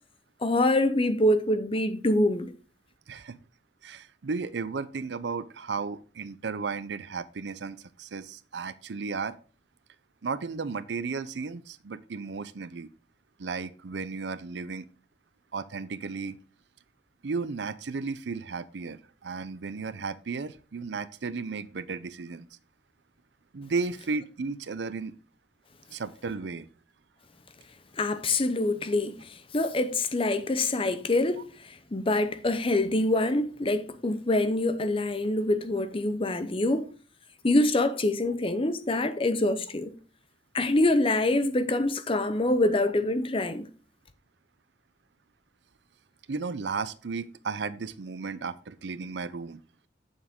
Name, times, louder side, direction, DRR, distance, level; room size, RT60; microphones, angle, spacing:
voice 1, 0.4-2.5 28.0-36.9 37.4-40.0 40.5-43.7, left 2 dB, 30° left, 0.7 m, -25 dB
voice 2, 3.1-3.4 3.8-9.4 10.2-12.9 13.4-14.8 15.5-16.4 17.2-22.5 23.5-25.1 25.9-26.7 46.3-49.6, right 4 dB, 70° right, 0.5 m, -34 dB
8.4 x 7.2 x 3.6 m
head